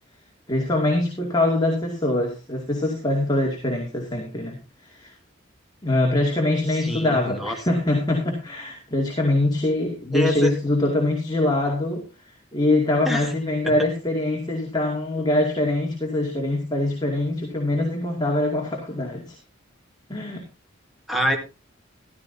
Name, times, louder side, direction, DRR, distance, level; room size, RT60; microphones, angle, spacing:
voice 1, 0.5-5.1 5.8-12.1 12.5-19.4 20.1-20.4, left 1 dB, 20° left, 0 dB, 2.3 m, -23 dB
voice 2, 6.9-7.6 10.1-10.5 13.1-13.3 13.6-13.7 21.1-21.4, equal, ahead, 2 dB, 2.2 m, -25 dB
15.0 x 12.5 x 2.8 m, 0.28 s
head